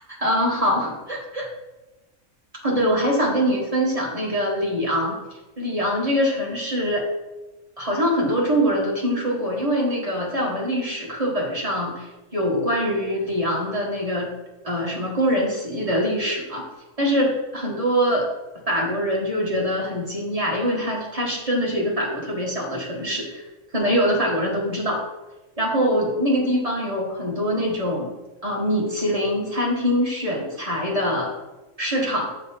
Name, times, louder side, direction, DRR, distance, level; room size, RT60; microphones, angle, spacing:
voice 1, 0.2-1.5 2.6-5.2 5.6-7.1 7.8-12.1 12.3-14.3 14.6-16.6 17.0-18.2 18.7-23.4 23.7-25.0 25.6-28.1 28.4-31.3 31.8-32.3, equal, 25° right, -3 dB, 1.6 m, -23 dB
6.6 x 4.2 x 5.5 m, 1.1 s
omnidirectional pair, 1.6 m